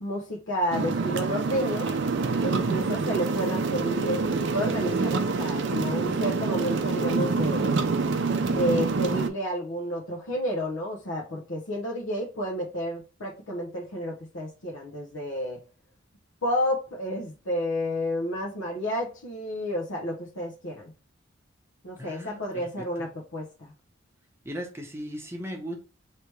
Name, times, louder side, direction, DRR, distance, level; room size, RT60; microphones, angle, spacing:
voice 1, 0.0-1.9 2.4-7.7 8.5-15.6 16.4-20.9 21.8-23.7, equal, 70° left, -2 dB, 0.9 m, -31 dB
sound 1, 0.7-9.3, right 4 dB, 60° right, 0.5 m, -26 dB
voice 2, 22.0-23.1 24.4-25.8, equal, 10° right, 2 dB, 0.8 m, -38 dB
3.4 x 2.9 x 4.5 m, 0.34 s
head